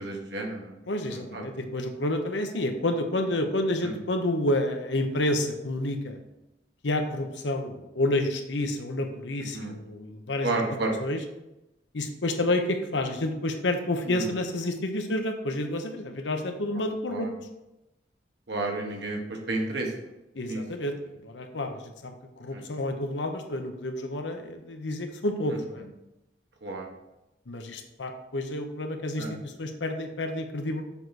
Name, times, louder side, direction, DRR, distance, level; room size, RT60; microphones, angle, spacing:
voice 1, 0.0-0.8 1.0-1.4 3.8-4.0 9.5-9.7 10.4-10.9 14.1-14.4 17.1-17.3 18.5-20.1 20.4-20.6 22.5-22.6 26.6-26.9 29.2-29.3, right 2 dB, 70° right, 1 dB, 1.4 m, -31 dB
voice 2, 0.9-6.2 6.8-10.5 11.0-11.2 11.9-17.3 20.3-25.8 27.5-30.8, left 1 dB, 90° left, 5 dB, 0.9 m, -29 dB
7.2 x 4.7 x 4.2 m, 0.94 s
head